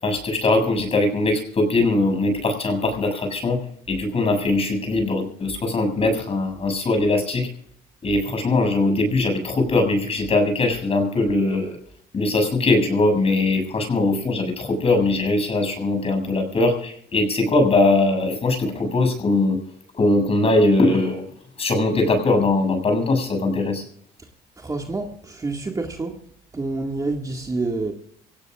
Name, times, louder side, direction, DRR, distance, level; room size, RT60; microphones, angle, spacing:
voice 1, 0.0-3.6 3.9-7.5 8.0-11.8 12.1-19.6 20.0-21.2 21.6-23.8, left 2 dB, 35° left, 6.9 m, -21 dB
voice 2, 24.6-26.2 26.5-27.9, right 3 dB, 20° right, 2.0 m, -28 dB
24.5 x 17.5 x 2.5 m
cardioid pair, 110°, 17 cm